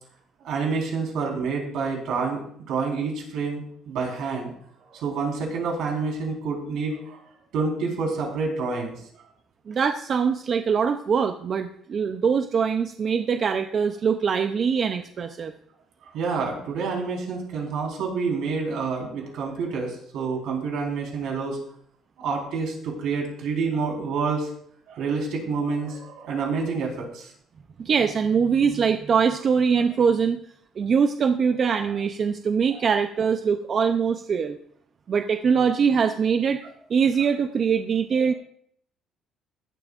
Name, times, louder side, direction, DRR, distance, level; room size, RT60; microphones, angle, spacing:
voice 1, 0.4-2.4 2.7-4.5 4.9-7.2 7.5-8.9 16.1-21.6 22.2-24.5 24.9-27.3 32.7-32.8, right 4 dB, 65° right, -1 dB, 4.2 m, -28 dB
voice 2, 9.7-15.5 27.8-30.4 30.8-34.6 35.1-36.6 36.9-38.3, right 6 dB, 35° right, 7 dB, 0.5 m, -23 dB
16.0 x 12.5 x 2.5 m, 0.65 s
cardioid pair, 165°, 0 cm